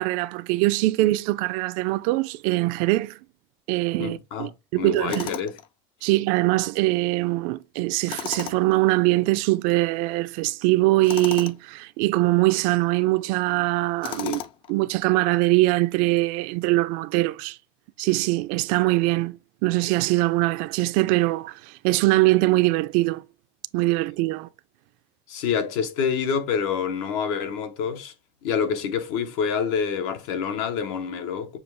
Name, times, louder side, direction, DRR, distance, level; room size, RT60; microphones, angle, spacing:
voice 1, 0.0-3.2 3.7-5.3 6.0-14.4 14.7-17.6 18.0-21.5 21.8-23.2 23.7-24.5, right 19 dB, 60° right, 0.4 m, -22 dB
voice 2, 4.0-5.6 14.2-14.5 25.3-28.1 28.4-31.6, left 6 dB, 75° left, 1.0 m, -27 dB
Tools, 5.1-5.7 8.0-8.8 11.0-11.6 14.0-14.7, left 10 dB, 35° left, 0.4 m, -34 dB
6.9 x 2.3 x 3.2 m
cardioid pair, 160°, 16 cm